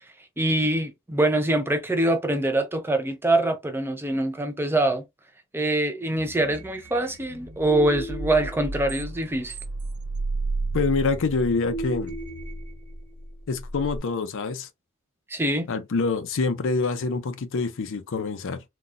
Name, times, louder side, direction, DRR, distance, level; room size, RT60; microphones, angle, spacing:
voice 1, 0.4-5.0 5.5-9.5 15.3-15.7, right 1 dB, 10° right, 0.5 m, -24 dB
sound 1, 6.2-14.0, right 2 dB, 85° right, 1.3 m, -33 dB
voice 2, 10.7-12.2 13.5-14.7 15.7-18.6, left 4 dB, 60° left, 0.5 m, -26 dB
4.0 x 2.3 x 2.4 m
head